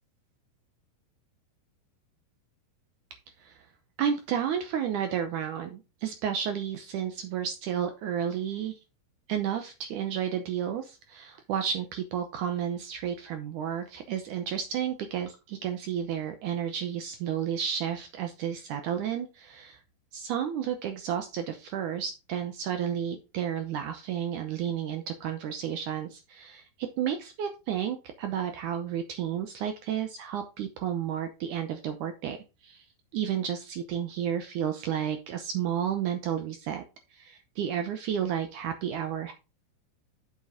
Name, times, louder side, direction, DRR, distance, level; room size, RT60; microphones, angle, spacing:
voice 1, 4.0-8.8 9.3-19.8 20.1-32.4 32.6-32.9 33.1-36.8 37.1-39.3, right 9 dB, 75° right, 7 dB, 1.9 m, -32 dB
7.4 x 6.8 x 3.7 m, 0.29 s
omnidirectional pair, 4.4 m